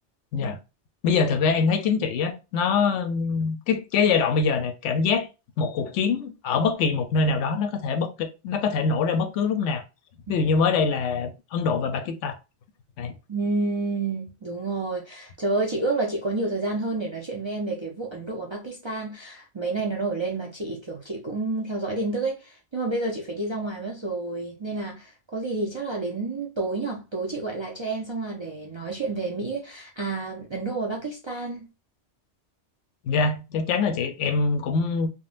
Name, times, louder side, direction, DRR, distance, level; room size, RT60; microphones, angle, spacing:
voice 1, 1.0-5.3 5.6-9.8 10.3-12.4 13.0-13.1 33.0-35.1, left 5 dB, 90° left, 0.9 m, -24 dB
voice 2, 13.3-31.7, right 3 dB, 45° right, 0.4 m, -29 dB
3.7 x 2.1 x 2.4 m
omnidirectional pair, 1.2 m